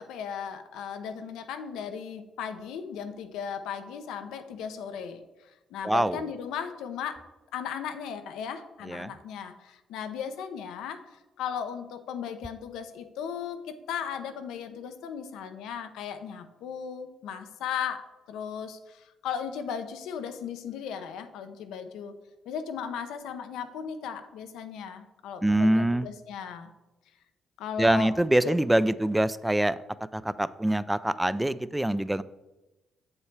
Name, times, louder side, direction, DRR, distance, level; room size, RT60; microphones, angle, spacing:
voice 1, 0.0-5.2 5.7-7.2 7.5-22.1 22.5-26.7 27.6-28.1 28.4-28.5, left 7 dB, 90° left, 8 dB, 0.7 m, -36 dB
voice 2, 5.8-6.2 8.8-9.1 25.4-26.1 27.8-29.8 30.1-32.2, right 1 dB, 10° right, 15 dB, 0.3 m, -24 dB
7.8 x 7.1 x 3.3 m, 1.1 s
cardioid pair, 90°, 0 cm